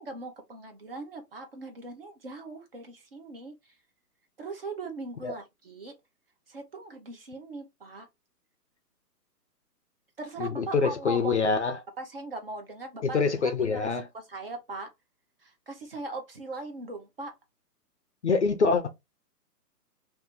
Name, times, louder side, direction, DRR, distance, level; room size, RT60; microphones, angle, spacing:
voice 1, 0.0-3.5 4.4-5.9 6.5-8.1 10.2-11.4 12.0-13.5 13.8-13.9 14.1-14.9 15.4-17.3, right 2 dB, 35° right, 0.7 m, -39 dB
voice 2, 10.4-11.8 13.0-14.1 18.2-18.9, left 4 dB, 50° left, 0.5 m, -25 dB
2.6 x 2.6 x 3.6 m
hypercardioid pair, 165°, 48 cm